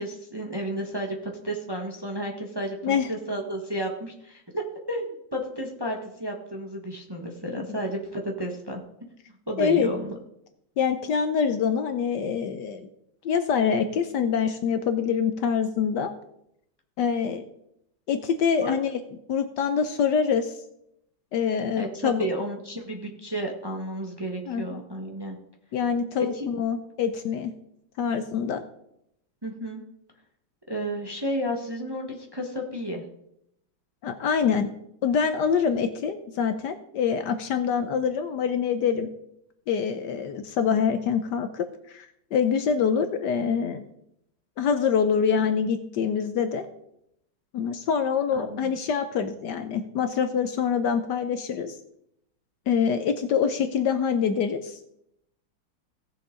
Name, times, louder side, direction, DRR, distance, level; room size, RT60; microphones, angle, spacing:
voice 1, 0.0-9.1 9.5-10.1 18.6-18.8 21.7-25.4 26.3-26.5 29.4-29.8 30.7-33.0 48.3-48.7, equal, 15° right, 1 dB, 1.0 m, -32 dB
voice 2, 9.6-9.9 10.8-12.9 13.2-16.1 17.0-17.4 18.1-19.0 19.3-20.5 21.3-22.3 24.5-24.8 25.7-27.5 28.0-28.6 34.0-34.7 35.0-39.1 39.7-43.9 44.6-46.7 47.5-51.7 52.7-54.8, left 6 dB, 65° left, 9 dB, 1.2 m, -25 dB
17.0 x 6.9 x 3.8 m, 0.77 s
omnidirectional pair, 2.1 m